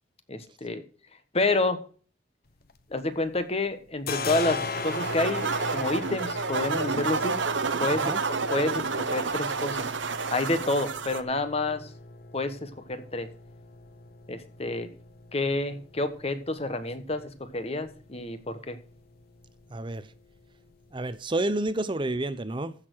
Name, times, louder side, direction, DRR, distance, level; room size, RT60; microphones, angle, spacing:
voice 1, 0.3-0.8 1.3-1.8 2.9-7.4 7.8-8.1 8.5-9.9 10.3-11.9 12.3-13.3 14.3-14.9 15.3-18.8, left 2 dB, 35° left, 1.2 m, -29 dB
sound 1, 2.5-3.4 3.7-21.2, left 4 dB, 55° left, 1.0 m, -40 dB
sound 2, 4.7-11.2, right 4 dB, 80° right, 0.9 m, -30 dB
voice 2, 19.7-20.1 20.9-22.7, right 2 dB, 25° right, 0.7 m, -29 dB
14.5 x 6.6 x 4.6 m
head